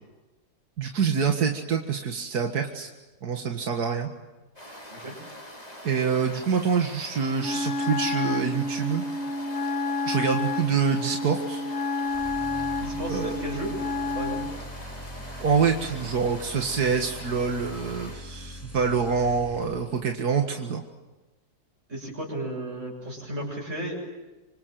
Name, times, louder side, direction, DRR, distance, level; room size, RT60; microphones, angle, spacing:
voice 1, 0.8-2.9 3.2-4.1 5.8-9.0 10.1-11.6 13.1-13.4 15.4-20.8, right 6 dB, 90° right, 3 dB, 2.3 m, -26 dB
sound 1, 4.6-18.2, left 1 dB, 25° left, 6.0 m, -43 dB
Wind instrument woodwind instrument, 7.4-14.6, left 2 dB, 60° left, 1.9 m, -30 dB
sound 2, 12.1-20.1, equal, 10° left, 1.7 m, -42 dB
voice 2, 12.8-13.7 14.1-14.4 21.9-24.1, right 1 dB, 50° right, -2 dB, 7.4 m, -34 dB
27.0 x 26.0 x 7.7 m, 1.2 s
omnidirectional pair, 1.6 m